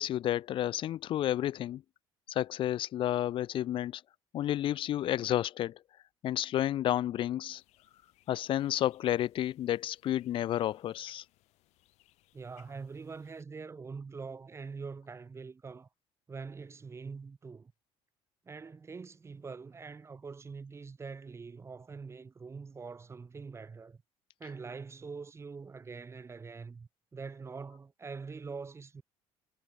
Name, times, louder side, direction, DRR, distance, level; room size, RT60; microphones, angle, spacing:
voice 1, 0.0-1.8 2.3-4.0 4.3-5.8 6.2-7.6 8.3-11.2, left 12 dB, 50° left, 0.4 m, -31 dB
sound 1, 7.5-13.4, left 18 dB, 75° left, 6.4 m, -68 dB
voice 2, 12.3-15.9 16.3-17.7 18.5-24.0 24.4-29.0, right 4 dB, 25° right, 1.3 m, -44 dB
cardioid pair, 110°, 11 cm